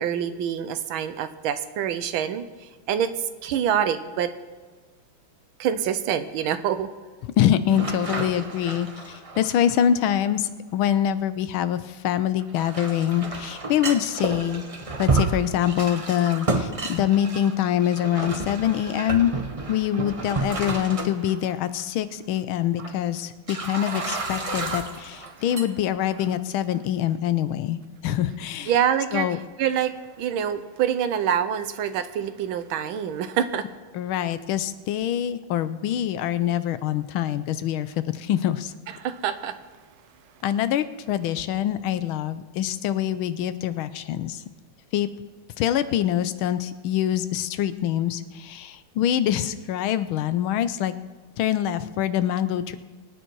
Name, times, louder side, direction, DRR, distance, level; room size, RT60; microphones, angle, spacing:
voice 1, 0.0-2.4 2.9-3.1 3.4-4.3 5.6-6.9 28.7-29.3 29.6-33.6 39.0-39.6, right 9 dB, 80° right, 11 dB, 1.6 m, -25 dB
voice 2, 7.4-14.6 15.0-19.3 19.7-28.7 29.1-29.4 33.9-38.7 40.4-44.4 44.9-45.1 45.6-50.9 51.4-52.8, left 10 dB, 80° left, 13 dB, 1.5 m, -25 dB
sound 1, 7.7-10.3 12.4-21.5 21.8-21.9 22.8-22.9 23.5-25.7 26.0-26.4, right 3 dB, 60° right, 0.3 m, -31 dB
24.0 x 9.2 x 4.7 m, 1.3 s
omnidirectional pair, 2.2 m